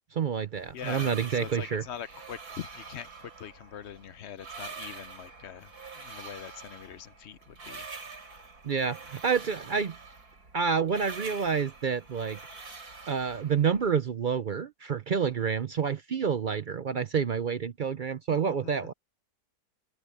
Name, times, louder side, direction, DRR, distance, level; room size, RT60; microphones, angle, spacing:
voice 1, 0.1-1.8 8.6-9.9 10.5-12.4 13.1-18.9, right 6 dB, 60° right, 0.5 m, -28 dB
sound 1, 0.5-13.9, right 4 dB, 90° right, 4.6 m, -45 dB
voice 2, 0.7-7.9 18.6-18.7, left 9 dB, 60° left, 0.8 m, -43 dB
open air
omnidirectional pair, 1.6 m